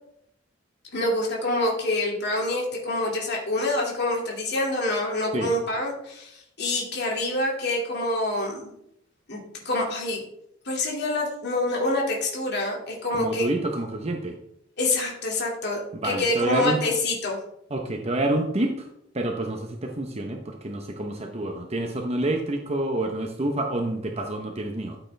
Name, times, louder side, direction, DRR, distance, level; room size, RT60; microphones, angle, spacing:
voice 1, 0.9-8.7 9.3-10.2 10.6-13.5 14.8-17.4, left 2 dB, 60° left, -1 dB, 2.5 m, -26 dB
voice 2, 13.1-14.4 15.9-16.8 17.7-18.9 19.1-25.0, right 1 dB, 35° right, 3 dB, 1.0 m, -28 dB
13.0 x 8.0 x 3.4 m, 0.77 s
head